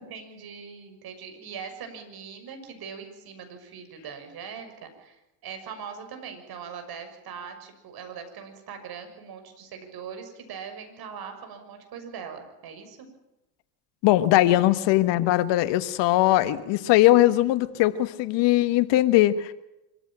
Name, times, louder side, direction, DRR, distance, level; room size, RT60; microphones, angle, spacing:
voice 1, 0.1-13.1, right 6 dB, 50° right, 7 dB, 6.4 m, -41 dB
voice 2, 14.0-19.5, left 15 dB, 60° left, 13 dB, 1.5 m, -20 dB
25.0 x 15.0 x 9.0 m, 0.93 s
supercardioid pair, 90°, 47 cm